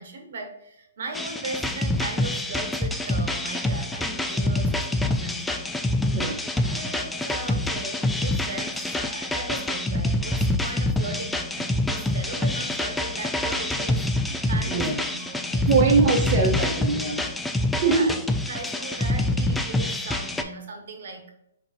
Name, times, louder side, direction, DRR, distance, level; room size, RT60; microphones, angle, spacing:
voice 1, 0.0-5.8 6.6-16.0 16.4-16.5 17.8-18.2 18.5-21.3, right 3 dB, 60° right, 3 dB, 1.3 m, -38 dB
sound 1, 1.1-20.4, left 1 dB, 5° left, 0.4 m, -26 dB
voice 2, 14.6-15.0 15.7-17.2 17.8-18.1, right 4 dB, 40° right, -1 dB, 1.1 m, -22 dB
4.8 x 4.0 x 2.7 m, 0.79 s
hypercardioid pair, 130°, 0 cm